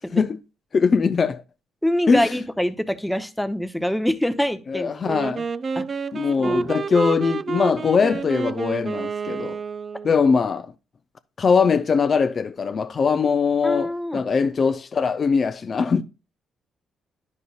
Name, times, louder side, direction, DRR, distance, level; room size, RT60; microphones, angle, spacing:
voice 1, 0.7-1.4 2.1-2.3 4.7-5.5 6.1-9.6 10.0-10.7 11.4-16.0, left 5 dB, 45° left, 0.4 m, -21 dB
voice 2, 1.8-5.0 5.8-5.9 6.4-6.7 13.6-14.2, equal, 5° left, 0.7 m, -25 dB
Wind instrument woodwind instrument, 5.0-10.2, right 5 dB, 40° right, 0.3 m, -29 dB
10.0 x 5.3 x 2.3 m
cardioid pair, 90°, 0 cm